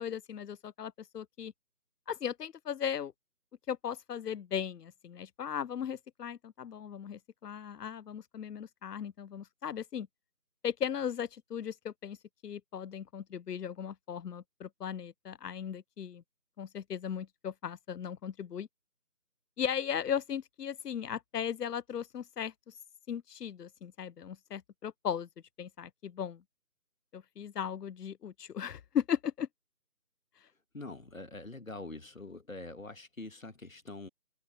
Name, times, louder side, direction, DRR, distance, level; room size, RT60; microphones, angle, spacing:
voice 1, 0.0-1.5 2.1-3.1 3.7-10.1 10.6-12.2 12.4-16.2 16.6-18.7 19.6-22.5 23.1-25.3 25.6-26.4 27.1-29.5, left 8 dB, 90° left, 0.5 m, -37 dB
voice 2, 30.7-34.1, left 2 dB, 60° left, 2.3 m, -44 dB
figure-of-eight pair, 170°, 46 cm